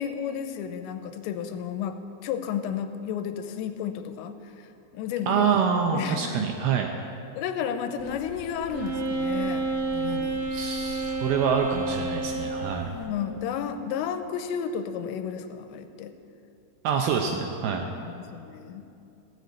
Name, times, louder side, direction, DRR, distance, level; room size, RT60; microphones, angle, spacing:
voice 1, 0.0-4.3 4.9-5.4 5.9-6.5 7.4-10.4 12.8-16.1 17.7-18.8, left 8 dB, 90° left, 9 dB, 2.9 m, -32 dB
voice 2, 5.3-6.9 10.5-12.9 16.8-17.9, right 6 dB, 80° right, 3 dB, 2.3 m, -26 dB
sound 1, 8.0-13.1, left 4 dB, 70° left, 1.5 m, -45 dB
Wind instrument woodwind instrument, 8.7-12.8, right 3 dB, 60° right, 5.6 m, -29 dB
16.0 x 6.7 x 8.3 m, 2.7 s
omnidirectional pair, 5.1 m